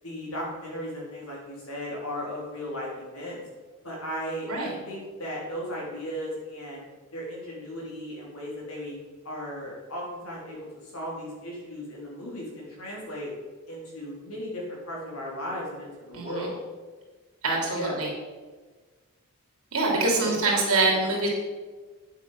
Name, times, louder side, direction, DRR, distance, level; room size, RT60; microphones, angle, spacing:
voice 1, 0.0-3.4 3.8-6.9 7.1-9.0 9.2-13.3 13.7-16.6 17.7-18.0 20.2-20.9, equal, 75° left, -4 dB, 3.8 m, -36 dB
voice 2, 16.1-16.5 17.4-18.1 19.7-21.3, right 3 dB, 75° right, -1 dB, 3.0 m, -25 dB
9.3 x 7.3 x 5.7 m, 1.4 s
head